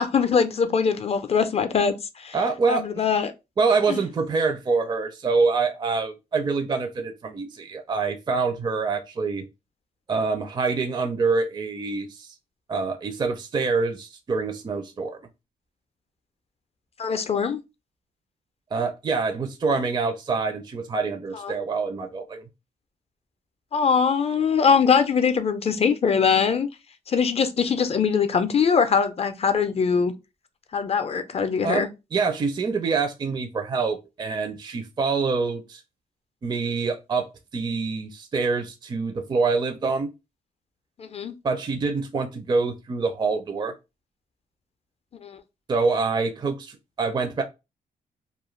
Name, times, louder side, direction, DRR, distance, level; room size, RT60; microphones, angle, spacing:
voice 1, 0.0-2.4 2.7-3.3 3.9-4.0 17.0-17.6 21.3-21.5 23.7-26.7 27.1-30.1 30.7-31.9 41.0-41.3 45.2-45.4, left 6 dB, 40° left, 0.4 m, -22 dB
voice 2, 2.3-3.0 3.6-9.4 10.1-12.3 12.7-15.2 18.7-22.4 31.6-31.9 32.1-35.8 36.4-40.1 41.4-43.7 45.7-47.4, right 4 dB, 30° right, 0.4 m, -26 dB
2.4 x 2.1 x 3.0 m
cardioid pair, 85°, 16 cm